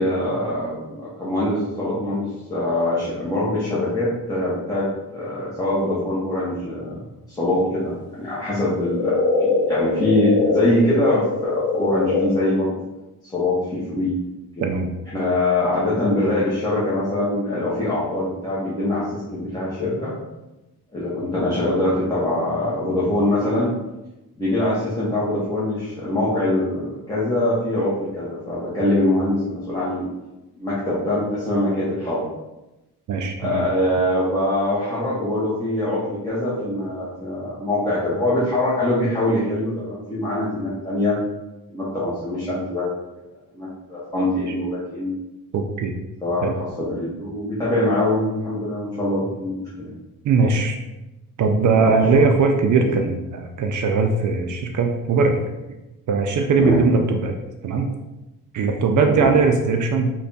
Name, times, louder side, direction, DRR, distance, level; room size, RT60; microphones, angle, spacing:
voice 1, 0.0-7.0 7.3-12.8 13.3-14.1 14.6-14.7 15.1-20.1 20.9-23.7 24.4-30.1 30.6-32.2 33.4-41.2 41.7-42.9 43.5-45.1 46.2-49.9 51.6-52.3 52.7-52.9 56.6-56.8 59.1-59.3, left 1 dB, 10° left, -10 dB, 0.8 m, -23 dB
sound 1, 8.5-12.2, left 3 dB, 30° left, 1.4 m, -23 dB
voice 2, 33.1-33.7 45.5-45.9 46.4-46.5 50.2-50.8 51.4-55.4 56.1-57.3 57.6-57.9 58.5-60.1, right 4 dB, 55° right, 4 dB, 0.4 m, -20 dB
3.3 x 2.3 x 3.9 m, 1.0 s
cardioid pair, 130°, 37 cm